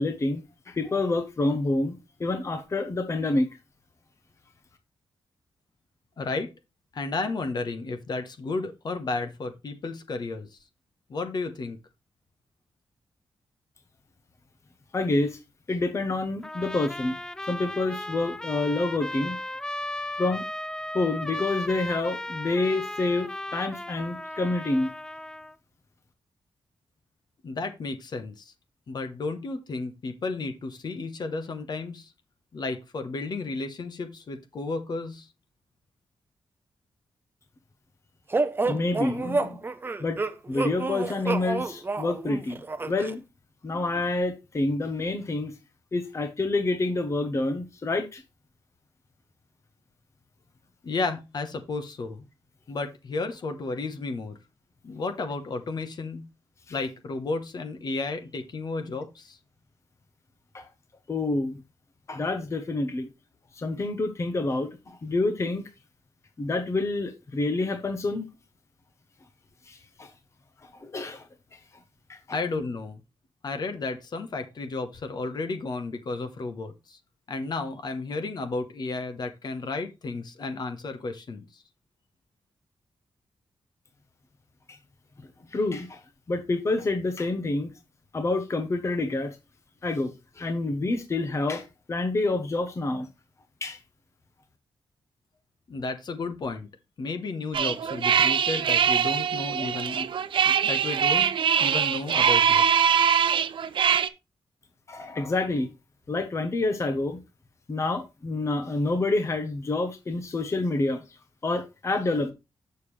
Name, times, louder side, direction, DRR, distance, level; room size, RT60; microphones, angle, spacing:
voice 1, 0.0-3.5 14.9-15.4 15.7-17.2 17.5-19.4 20.2-20.4 20.9-24.9 38.6-39.6 40.0-40.2 40.5-43.2 43.6-45.5 45.9-48.2 60.5-60.7 61.1-61.6 62.1-63.1 63.6-65.6 66.4-68.2 69.7-70.1 70.8-71.2 72.1-72.2 84.7-84.8 85.5-86.0 86.3-87.7 88.1-89.4 89.8-93.1 93.6-93.8 104.9-105.7 106.1-107.2 107.7-111.0 111.4-112.3, left 2 dB, 35° left, 1.0 m, -28 dB
voice 2, 6.2-6.5 6.9-10.5 11.1-11.8 27.4-28.5 28.9-32.1 32.5-35.3 50.8-52.2 52.7-54.4 54.8-56.2 56.7-59.4 72.3-73.0 73.4-77.0 77.3-81.5 95.7-96.7 97.0-100.1 100.4-101.3 101.6-102.6, left 3 dB, 55° left, 1.1 m, -32 dB
Trumpet, 16.4-25.5, left 1 dB, 10° left, 0.3 m, -36 dB
sound 1, 38.3-43.1, right 3 dB, 25° right, 0.6 m, -29 dB
sound 2, 97.5-104.1, right 8 dB, 70° right, 0.6 m, -23 dB
7.2 x 6.7 x 3.3 m
wide cardioid pair, 130°, 9 cm